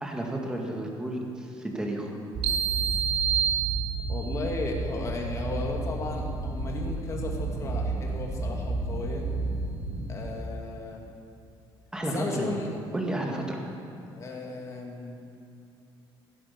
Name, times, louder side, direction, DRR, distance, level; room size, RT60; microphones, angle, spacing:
voice 1, 0.0-2.1 11.9-12.5 12.9-13.6, right 1 dB, 10° right, 0 dB, 2.1 m, -32 dB
sound 1, 2.3-10.2, right 3 dB, 50° right, 2.6 m, -32 dB
sound 2, 2.4-4.4, right 8 dB, 75° right, 1.6 m, -28 dB
voice 2, 4.1-9.3 10.1-11.1 12.1-12.7 14.1-15.2, left 3 dB, 35° left, 0 dB, 2.5 m, -35 dB
16.0 x 10.0 x 7.0 m, 2.7 s
cardioid pair, 140°, 9 cm